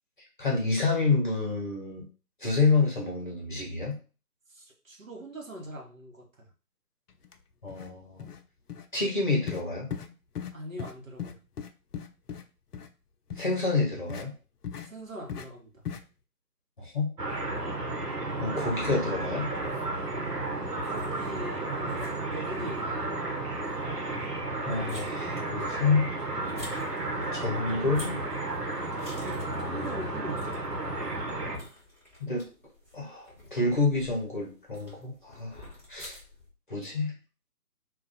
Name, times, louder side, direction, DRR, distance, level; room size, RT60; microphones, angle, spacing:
voice 1, 0.4-2.0 2.4-4.0 7.6-8.3 8.9-9.9 13.4-14.3 16.8-17.1 18.4-19.5 24.7-26.1 27.3-28.2 32.2-32.5 32.9-36.2 36.7-37.1, left 3 dB, 30° left, -1 dB, 0.8 m, -28 dB
voice 2, 4.5-6.5 10.5-11.4 14.9-15.8 20.8-22.9 27.1-27.7 29.0-30.7, right 1 dB, 55° right, 0 dB, 1.1 m, -42 dB
sound 1, 7.2-7.3 7.7-7.9 8.2-8.4 8.7-8.9 9.5-9.6 9.9-10.1 10.4-10.5 10.8-10.9 11.2-12.4 12.7-12.9 13.3-13.5 14.1-14.2 14.6-14.9 15.3-15.5 15.8-16.0, left 8 dB, 75° left, 0.6 m, -37 dB
sound 2, 17.2-31.6, right 2 dB, 80° right, 1.0 m, -33 dB
sound 3, 19.3-36.5, left 1 dB, 10° right, 0.8 m, -50 dB
2.4 x 2.3 x 4.0 m, 0.34 s
figure-of-eight pair, 150°, 47 cm